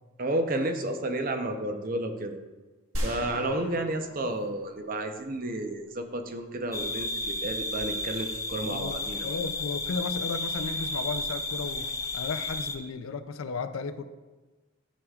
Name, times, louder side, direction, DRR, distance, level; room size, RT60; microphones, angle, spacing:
voice 1, 0.2-2.4 3.0-9.3, right 1 dB, 40° right, 6 dB, 0.7 m, -31 dB
sound 1, 2.9-5.8, equal, 70° right, 1.4 m, -37 dB
sound 2, 6.7-12.8, left 2 dB, 15° left, 0.5 m, -33 dB
voice 2, 8.6-14.0, left 4 dB, 75° left, 11 dB, 0.5 m, -35 dB
12.5 x 6.4 x 2.4 m, 1.2 s
head